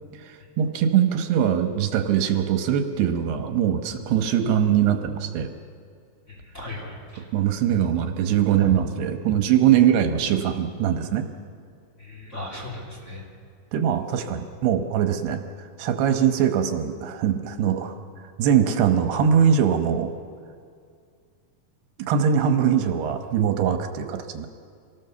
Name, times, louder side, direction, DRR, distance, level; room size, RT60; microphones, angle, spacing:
voice 1, 0.2-5.6 7.3-11.3 13.7-18.0 18.4-20.1 22.1-24.5, right 9 dB, 80° right, 6 dB, 3.1 m, -22 dB
voice 2, 6.3-7.2 12.0-13.2, left 1 dB, 20° left, -3 dB, 3.4 m, -37 dB
26.0 x 19.0 x 6.9 m, 2.2 s
omnidirectional pair, 4.7 m